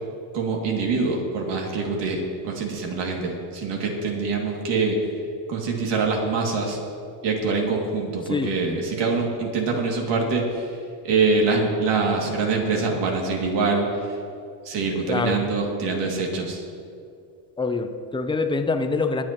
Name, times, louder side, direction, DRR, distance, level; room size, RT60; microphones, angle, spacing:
voice 1, 0.3-5.0 5.5-6.8 7.2-10.7 11.0-13.9 14.6-16.6, right 4 dB, 55° right, 0 dB, 2.5 m, -24 dB
voice 2, 15.1-15.5 17.6-19.2, left 4 dB, 10° left, 7 dB, 0.5 m, -25 dB
20.5 x 8.6 x 3.0 m, 2.5 s
supercardioid pair, 125°, 50 cm